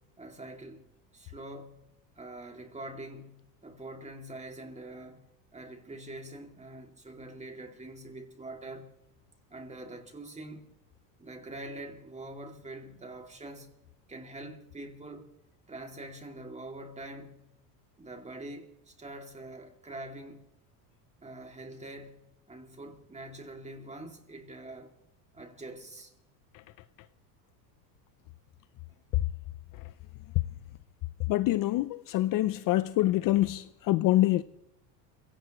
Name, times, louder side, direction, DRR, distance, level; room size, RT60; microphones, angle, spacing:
voice 1, 0.2-0.8 1.1-1.8 2.2-5.3 5.5-8.9 9.5-10.7 11.2-13.8 14.1-15.3 15.7-17.5 18.0-20.5 21.2-24.9 25.3-26.1, right 1 dB, 15° right, 2.5 m, -44 dB
voice 2, 31.3-34.4, left 16 dB, 45° left, 0.6 m, -25 dB
27.5 x 17.0 x 3.1 m
supercardioid pair, 105°, 48 cm